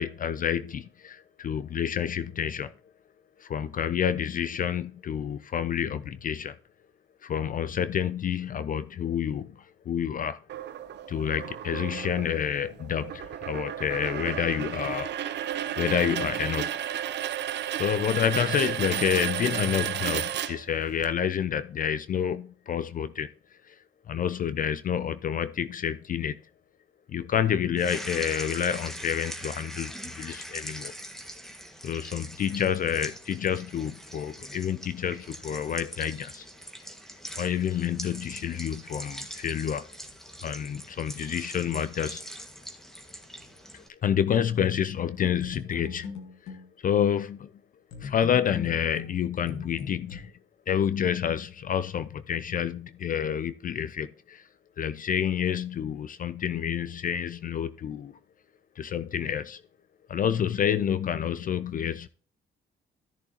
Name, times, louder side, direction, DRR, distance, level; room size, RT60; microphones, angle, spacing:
voice 1, 0.0-2.7 3.4-6.6 7.2-9.5 9.9-10.4 11.1-15.1 15.8-16.7 17.8-23.3 23.7-23.8 24.1-26.4 27.1-30.9 31.8-36.5 37.4-39.9 40.4-42.2 43.7-46.1 46.8-47.5 48.0-50.3 50.7-54.4 54.8-58.1 58.8-59.6 60.1-62.1, left 8 dB, 45° left, 0.4 m, -28 dB
sound 1, 10.5-21.1, right 11 dB, 60° right, 0.6 m, -33 dB
sound 2, 27.8-43.9, equal, ahead, 1.6 m, -42 dB
sound 3, 45.2-46.7 47.9-50.2, left 6 dB, 85° left, 1.5 m, -40 dB
13.5 x 6.7 x 2.9 m
cardioid pair, 90°, 20 cm